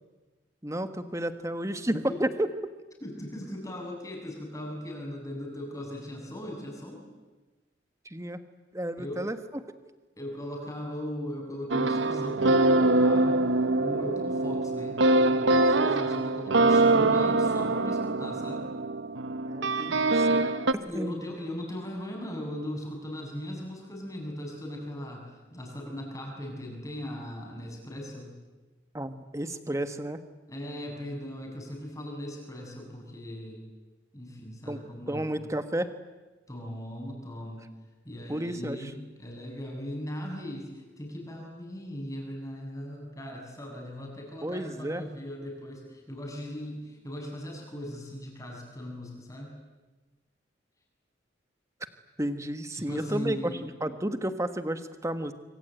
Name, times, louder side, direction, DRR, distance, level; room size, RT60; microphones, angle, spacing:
voice 1, 0.6-2.5 8.0-8.4 8.7-9.4 19.4-20.4 20.7-21.2 28.9-30.2 34.7-34.8 35.1-35.9 38.3-38.9 44.4-45.0 52.2-55.3, right 1 dB, 15° right, 9 dB, 1.5 m, -32 dB
voice 2, 3.0-7.0 9.0-9.2 10.2-18.7 20.8-25.2 25.5-28.3 30.5-33.6 34.1-35.3 36.5-37.6 38.0-49.6 52.7-53.6, left 1 dB, 15° left, 0 dB, 7.7 m, -38 dB
sound 1, 11.7-20.7, right 2 dB, 85° right, 1.2 m, -24 dB
25.5 x 25.5 x 9.2 m, 1.2 s
head